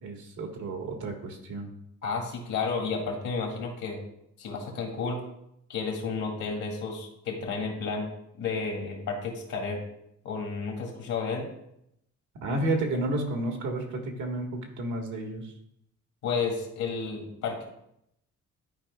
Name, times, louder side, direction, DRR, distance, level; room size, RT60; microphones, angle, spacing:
voice 1, 0.0-1.7 12.4-15.5, right 2 dB, 80° right, 3 dB, 1.4 m, -31 dB
voice 2, 2.0-4.0 4.4-5.2 5.7-8.1 8.4-9.8 10.2-11.5 16.2-17.6, left 4 dB, 80° left, 1 dB, 1.9 m, -31 dB
12.0 x 4.7 x 2.3 m, 0.78 s
cardioid pair, 90°, 30 cm